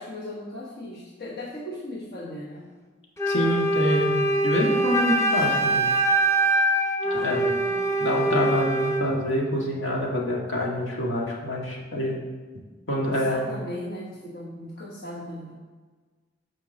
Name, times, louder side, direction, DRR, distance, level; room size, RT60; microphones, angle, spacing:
voice 1, 0.0-2.6 5.0-5.7 7.0-8.0 13.0-15.6, left 1 dB, 60° left, -3 dB, 1.2 m, -38 dB
Wind instrument woodwind instrument, 3.2-9.1, right 1 dB, 15° left, 0.8 m, -23 dB
voice 2, 3.3-5.9 7.2-7.5 8.0-12.2 12.9-13.5, equal, 80° left, -2 dB, 1.8 m, -26 dB
6.9 x 5.2 x 6.4 m, 1.4 s
head